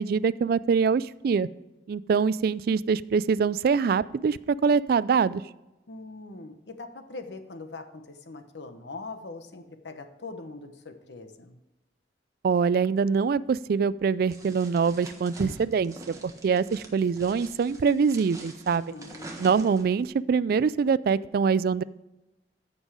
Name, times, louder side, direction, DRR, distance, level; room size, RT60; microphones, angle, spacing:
voice 1, 0.0-1.5 1.9-5.4 12.4-16.0 16.2-18.9 19.4-21.8, right 5 dB, 55° right, 18 dB, 0.3 m, -24 dB
voice 2, 5.9-11.6 18.7-19.3, left 3 dB, 75° left, 8 dB, 1.0 m, -42 dB
sound 1, 14.3-20.0, right 1 dB, 20° right, 1.4 m, -44 dB
14.0 x 5.4 x 4.8 m, 1.0 s
head